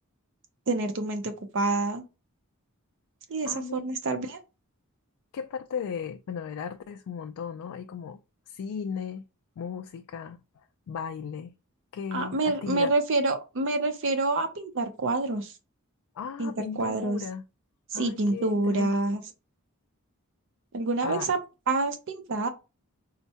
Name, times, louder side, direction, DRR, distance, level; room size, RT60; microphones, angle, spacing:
voice 1, 0.7-2.0 3.3-4.4 12.1-15.5 16.4-17.2 17.9-19.2 20.7-21.4 21.7-22.5, right 2 dB, 60° right, 0.5 m, -27 dB
voice 2, 3.4-3.9 5.3-8.2 8.5-9.2 9.6-10.4 10.9-11.5 11.9-12.9 16.2-17.4 17.9-18.9 21.0-21.3, left 7 dB, 80° left, 0.3 m, -36 dB
4.4 x 2.1 x 2.7 m
head